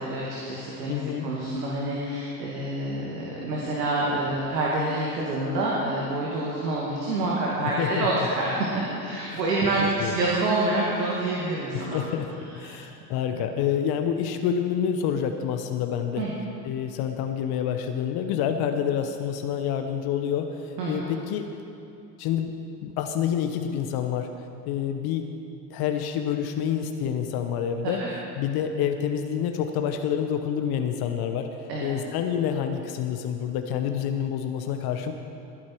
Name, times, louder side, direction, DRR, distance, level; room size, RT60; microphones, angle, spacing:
voice 1, 0.0-12.0 12.6-12.8 16.2-16.3 20.8-21.1 27.8-28.1 31.7-31.9, right 2 dB, 75° right, -4 dB, 2.3 m, -27 dB
voice 2, 0.9-1.3 7.6-8.3 9.3-9.4 10.0-10.1 11.7-16.3 16.6-21.5 22.2-22.5 22.8-24.3 24.6-25.3 25.7-28.0 28.4-35.1, left 8 dB, 50° left, 6 dB, 1.0 m, -28 dB
20.5 x 8.6 x 4.6 m, 2.7 s
figure-of-eight pair, 70°, 49 cm